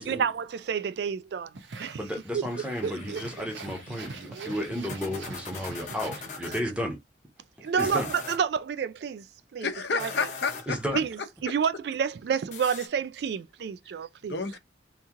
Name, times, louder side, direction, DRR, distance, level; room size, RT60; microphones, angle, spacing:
voice 1, 0.0-1.5 1.8-2.0 2.3-2.5 2.8-3.2 4.3-4.5 7.6-9.2 9.5-9.7 9.9-10.1 10.9-14.4, right 7 dB, 65° right, 0.3 m, -29 dB
bike pump fast, 1.5-6.8, right 3 dB, 85° right, 0.7 m, -43 dB
voice 2, 2.0-7.0 7.6-8.1 10.7-11.0, equal, 5° right, 0.7 m, -33 dB
sound 1, 2.5-6.6 7.7-8.4 9.8-10.8 12.5-12.9, left 5 dB, 40° left, 0.8 m, -42 dB
voice 3, 9.6-10.8 14.2-14.6, left 5 dB, 70° left, 0.7 m, -30 dB
2.9 x 2.7 x 3.6 m
head